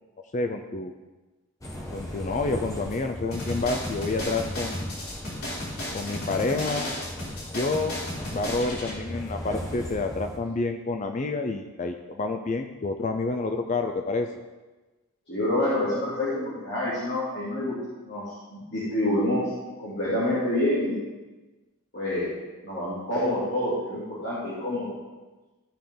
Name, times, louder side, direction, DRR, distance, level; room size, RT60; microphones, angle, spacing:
voice 1, 0.3-0.9 1.9-4.8 5.9-6.9 7.5-8.0 8.3-14.3, left 3 dB, 35° left, 5 dB, 0.4 m, -28 dB
sound 1, 1.6-10.4, equal, 15° left, 1.0 m, -38 dB
sound 2, 3.3-8.9, left 1 dB, 90° left, 3.3 m, -34 dB
voice 2, 15.3-17.7 18.0-19.4 19.8-21.0 21.9-22.3 22.6-24.9, left 1 dB, 50° left, -10 dB, 2.7 m, -27 dB
14.0 x 5.1 x 3.8 m, 1.2 s
head